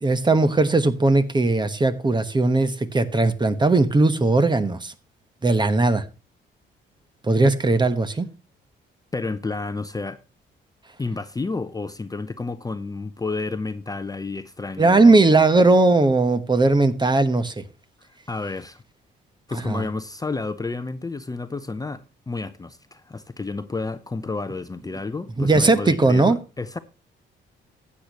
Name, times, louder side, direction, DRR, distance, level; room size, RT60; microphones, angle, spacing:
voice 1, 0.0-4.9 5.4-6.0 7.2-8.3 14.8-17.6 19.6-19.8 25.4-26.4, right 3 dB, 20° right, 1.1 m, -18 dB
voice 2, 9.1-10.2 11.0-15.2 18.3-18.8 19.5-26.8, left 3 dB, 20° left, 0.7 m, -31 dB
14.5 x 8.4 x 3.0 m
cardioid pair, 90°, 20 cm